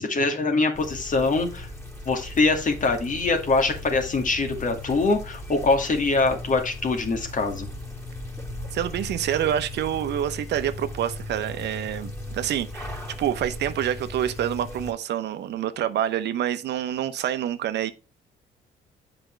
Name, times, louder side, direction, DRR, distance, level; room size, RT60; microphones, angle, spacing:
voice 1, 0.0-1.7 2.1-7.7, left 3 dB, 45° left, 2.3 m, -23 dB
sound 1, 0.7-14.9, left 1 dB, 15° left, 2.6 m, -37 dB
voice 2, 8.7-17.9, right 10 dB, 70° right, 0.9 m, -27 dB
7.8 x 5.2 x 4.4 m
supercardioid pair, 70°, 19 cm